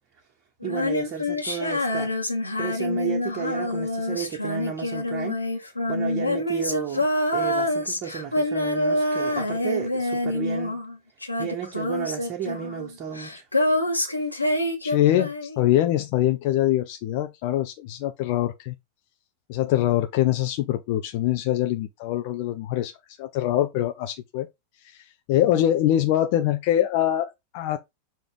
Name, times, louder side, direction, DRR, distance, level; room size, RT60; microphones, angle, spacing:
Female singing, 0.6-11.0 11.2-15.7, left 1 dB, 85° left, 1.5 m, -26 dB
voice 1, 0.6-2.1 2.6-10.8 11.4-13.4, right 8 dB, 35° right, 1.7 m, -33 dB
voice 2, 14.8-18.7 19.5-22.9 23.2-24.5 24.9-25.0 25.3-27.8, left 13 dB, 45° left, 0.7 m, -23 dB
6.9 x 3.1 x 5.2 m
figure-of-eight pair, 90°, 0 cm